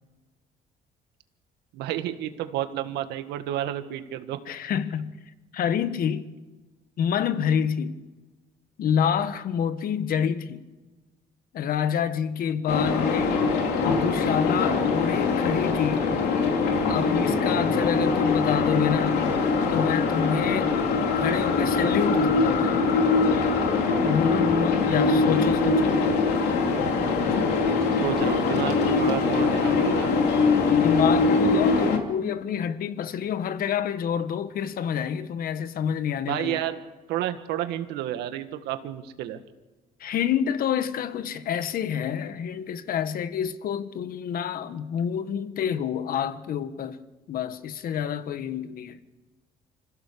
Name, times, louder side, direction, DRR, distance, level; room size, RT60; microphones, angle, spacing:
voice 1, 1.7-4.4 24.8-25.8 27.9-30.1 36.2-36.8 37.1-39.4, right 12 dB, 90° right, 1.7 m, -31 dB
voice 2, 4.5-5.2 5.5-6.3 7.0-8.0 8.8-10.6 11.5-13.4 13.8-16.1 16.9-19.3 19.7-22.8 24.0-26.0 30.7-36.6 40.0-47.0 47.3-49.0, left 8 dB, 60° left, 1.4 m, -28 dB
sound 1, 12.7-32.0, left 4 dB, 80° left, 2.9 m, -23 dB
26.0 x 16.0 x 6.9 m
cardioid pair, 110°, 17 cm